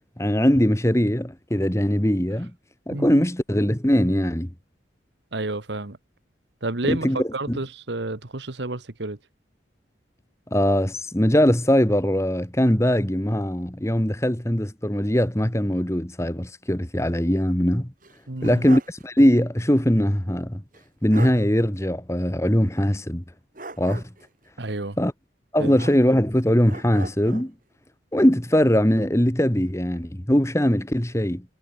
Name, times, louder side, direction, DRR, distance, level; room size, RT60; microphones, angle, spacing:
voice 1, 0.2-2.5 2.9-4.5 6.8-7.2 7.5-7.6 10.5-17.9 18.4-20.6 21.0-23.2 23.8-24.0 25.0-25.1 25.5-27.5 28.1-31.4, equal, 15° left, 1.6 m, -21 dB
voice 2, 2.9-3.3 5.3-6.0 6.6-9.2 18.3-18.6 24.6-25.0 25.6-25.8, right 2 dB, 65° right, 1.4 m, -30 dB
sound 1, 18.0-19.0 19.4-19.5 20.7-20.8 21.1-21.4 23.5-24.3 25.7-26.3 26.7-27.5, right 2 dB, 45° right, 2.4 m, -39 dB
head